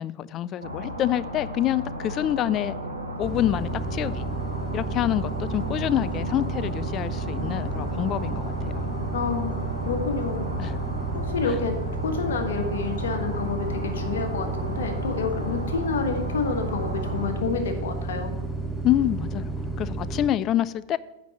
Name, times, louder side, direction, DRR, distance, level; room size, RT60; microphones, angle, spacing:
voice 1, 0.0-2.8 3.2-4.3 4.7-8.8 10.6-10.8 18.8-21.0, left 12 dB, 35° left, 18 dB, 0.3 m, -27 dB
sound 1, 0.6-17.3, equal, 85° right, 1.6 m, -35 dB
sound 2, 3.2-20.3, right 3 dB, ahead, 1.1 m, -31 dB
voice 2, 9.1-10.5 11.1-11.8 12.0-18.3, left 5 dB, 60° left, 6 dB, 1.4 m, -29 dB
8.9 x 5.3 x 7.1 m, 0.99 s
figure-of-eight pair, 90°, 0 cm